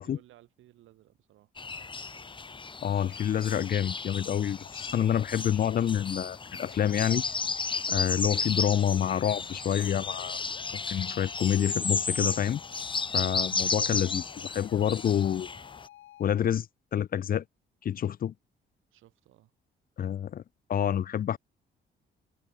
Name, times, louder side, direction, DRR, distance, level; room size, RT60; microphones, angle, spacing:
voice 1, 0.0-1.5 18.9-19.5 21.0-21.1, right 14 dB, 85° right, 6.4 m, -59 dB
sound 1, 1.6-15.9, left 4 dB, 25° left, 1.1 m, -34 dB
voice 2, 2.8-7.2 7.9-10.4 10.9-12.6 13.1-15.5 16.2-16.7 16.9-17.4 17.8-18.3 20.0-20.4 20.7-21.4, left 9 dB, 45° left, 0.5 m, -28 dB
sound 2, 4.9-16.2, left 14 dB, 85° left, 4.8 m, -53 dB
cardioid pair, 90°, 20 cm